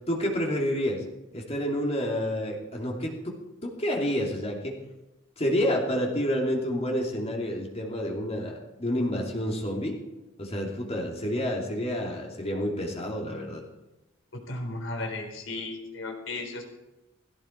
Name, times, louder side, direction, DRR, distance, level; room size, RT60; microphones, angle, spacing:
voice 1, 0.1-1.0 1.3-3.3 3.6-4.7 5.4-10.0 10.4-13.6, equal, 30° left, -1 dB, 2.9 m, -29 dB
voice 2, 14.3-16.6, left 2 dB, 75° left, 2 dB, 4.2 m, -35 dB
18.5 x 16.0 x 4.6 m, 1.0 s
head